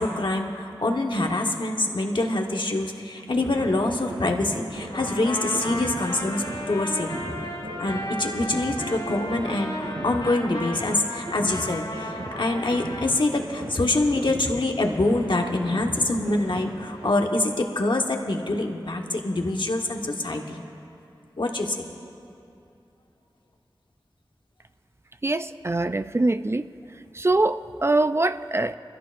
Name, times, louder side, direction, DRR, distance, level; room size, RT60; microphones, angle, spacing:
voice 1, 0.0-7.1 7.8-20.6 21.4-21.8, left 2 dB, 65° left, 2 dB, 1.2 m, -25 dB
sound 1, 3.3-17.1, right 1 dB, 85° right, 2.2 m, -38 dB
Trumpet, 4.9-13.1, equal, 90° left, 2.4 m, -34 dB
voice 2, 25.2-26.7 27.1-28.7, right 2 dB, 30° right, 12 dB, 0.4 m, -23 dB
23.5 x 15.5 x 2.5 m, 2.7 s
wide cardioid pair, 50°, 9 cm